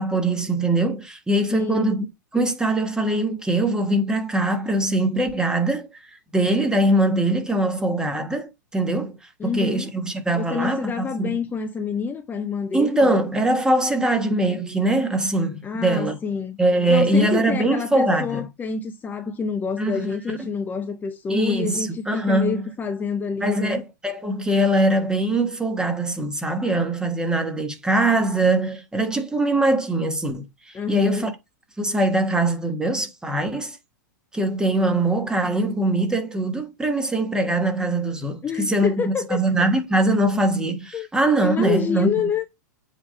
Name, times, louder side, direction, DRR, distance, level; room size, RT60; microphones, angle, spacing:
voice 1, 0.0-2.1 2.3-5.9 6.3-9.2 9.4-11.4 12.7-16.2 16.6-18.4 19.8-20.1 20.4-20.5 21.3-22.7 23.4-31.3 31.8-33.8 34.3-42.1, right 1 dB, 5° right, 1.3 m, -22 dB
voice 2, 1.5-1.9 9.4-9.9 10.3-13.1 15.6-16.6 16.9-23.8 30.7-31.3 38.4-39.5 40.9-41.1 41.4-42.4, left 5 dB, 20° left, 0.7 m, -27 dB
7.9 x 3.6 x 3.8 m
hypercardioid pair, 105°, 10 cm